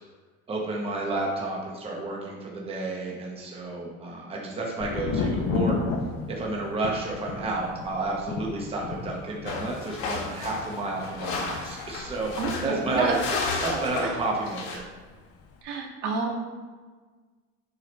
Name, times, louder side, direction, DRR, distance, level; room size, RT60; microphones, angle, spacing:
voice 1, 0.5-5.8 6.3-13.2 13.6-14.8, right 2 dB, 20° right, -2 dB, 1.0 m, -31 dB
Thunder, 4.8-14.5 14.7-15.4, left 4 dB, 50° left, 0.8 m, -34 dB
sound 1, 9.5-14.8, left 4 dB, 80° left, 1.7 m, -33 dB
voice 2, 12.4-13.2 13.7-14.1 15.6-16.3, right 4 dB, 75° right, -1 dB, 1.7 m, -29 dB
7.4 x 5.6 x 3.2 m, 1.4 s
cardioid pair, 150°, 30 cm